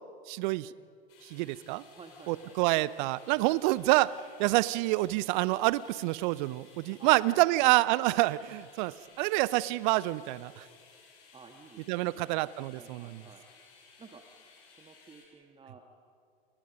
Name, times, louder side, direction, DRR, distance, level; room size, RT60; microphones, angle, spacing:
voice 1, 0.3-0.7 1.2-1.8 2.3-4.1 4.4-10.7 11.9-13.2, right 19 dB, 45° right, 19 dB, 0.7 m, -27 dB
sound 1, 1.1-15.2, left 5 dB, 45° left, 7.9 m, -58 dB
voice 2, 1.9-2.6 6.9-7.8 11.3-12.3 12.7-13.5 14.0-14.2 14.7-15.8, right 4 dB, 15° right, 5 dB, 1.6 m, -52 dB
29.0 x 29.0 x 5.3 m, 2.2 s
figure-of-eight pair, 85°, 32 cm